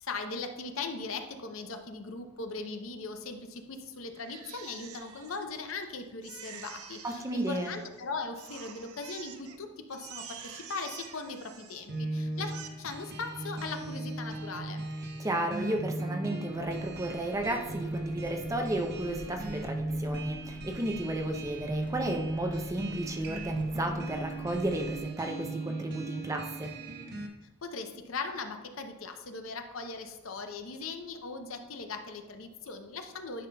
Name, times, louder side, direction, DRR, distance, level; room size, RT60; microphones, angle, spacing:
voice 1, 0.0-12.5 12.8-14.8 27.6-33.5, left 4 dB, 65° left, 6 dB, 0.7 m, -39 dB
Crying sobbing, 4.2-5.8 6.2-8.0 8.4-9.6 9.9-12.0 12.3-12.7, right 8 dB, 85° right, 0.6 m, -48 dB
voice 2, 7.0-7.7 15.2-26.7, right 1 dB, 15° right, 3 dB, 0.5 m, -33 dB
sound 1, 11.9-27.3, right 2 dB, 50° right, 0.9 m, -37 dB
sound 2, 16.5-25.0, equal, 25° left, 0.9 m, -51 dB
10.0 x 5.4 x 2.3 m, 1.0 s
head